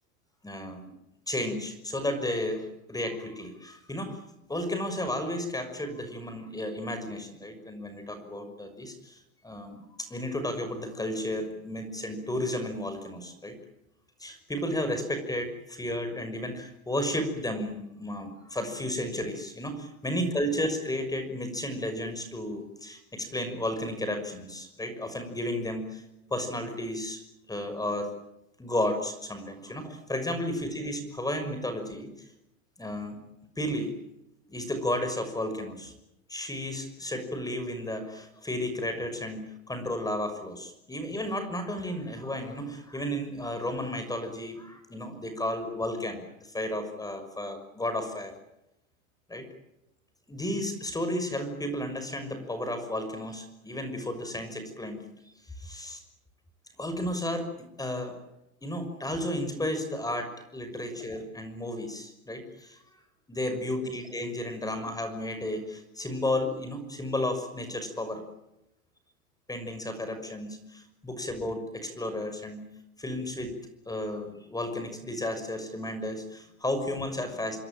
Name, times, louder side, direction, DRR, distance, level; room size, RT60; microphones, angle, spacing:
voice 1, 0.4-0.9 1.3-4.2 4.5-13.6 14.2-26.0 26.3-27.2 27.5-28.1 28.6-32.1 32.8-33.2 33.6-33.9 34.5-35.9 36.3-48.3 49.3-49.5 50.3-55.0 55.5-56.0 56.8-58.2 58.6-62.8 63.3-68.2 69.5-72.6 73.0-73.5 73.9-77.6, left 1 dB, 10° left, 8 dB, 6.1 m, -33 dB
28.0 x 22.0 x 9.1 m, 0.86 s
hypercardioid pair, 105°, 41 cm